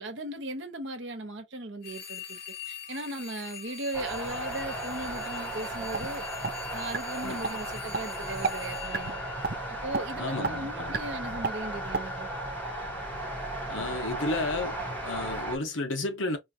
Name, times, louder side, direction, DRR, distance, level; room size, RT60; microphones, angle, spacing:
voice 1, 0.0-2.4 2.7-6.2 6.7-9.2 9.7-12.3, right 1 dB, 65° right, 1.2 m, -37 dB
sound 1, 1.8-10.0, left 8 dB, 50° left, 1.3 m, -43 dB
sound 2, 3.9-15.6, right 1 dB, 10° left, 1.2 m, -36 dB
sound 3, 5.3-6.1 6.4-6.5 6.9-7.0 7.4-7.5 7.9-8.0 8.4-8.5 8.9-9.1 9.4-9.6 9.9-10.0 10.4-10.5 10.9-11.0 11.4-11.5 11.9-12.0, right 4 dB, 50° right, 0.5 m, -29 dB
voice 2, 10.2-10.9 13.7-14.8 15.0-16.4, left 2 dB, 75° left, 1.2 m, -32 dB
4.3 x 2.5 x 2.8 m
head